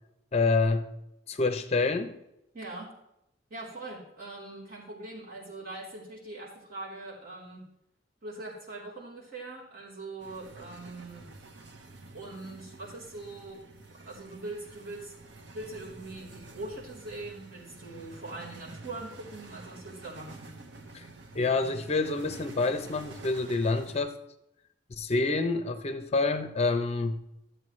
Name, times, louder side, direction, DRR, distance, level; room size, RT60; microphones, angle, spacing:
voice 1, 0.3-0.9 1.3-2.2 20.9-21.1 21.3-24.2 24.9-27.2, left 3 dB, 35° left, 9 dB, 0.6 m, -27 dB
voice 2, 2.5-2.9 3.5-7.6 8.2-11.3 12.1-13.6 14.1-15.1 15.5-20.5, right 2 dB, 55° right, -6 dB, 3.6 m, -42 dB
sound 1, 10.2-24.0, right 2 dB, 80° right, 0.9 m, -49 dB
12.5 x 7.9 x 3.1 m, 0.84 s
head